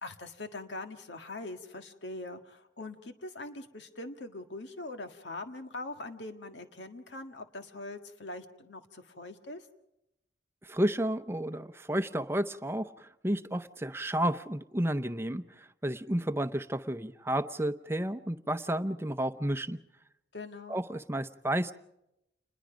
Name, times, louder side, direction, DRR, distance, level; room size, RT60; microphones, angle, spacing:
voice 1, 0.0-9.7 20.3-20.8, left 2 dB, 80° left, 6 dB, 1.7 m, -42 dB
voice 2, 10.6-19.8 20.7-21.7, right 1 dB, 15° right, 10 dB, 0.7 m, -31 dB
28.5 x 21.0 x 5.1 m, 0.85 s
head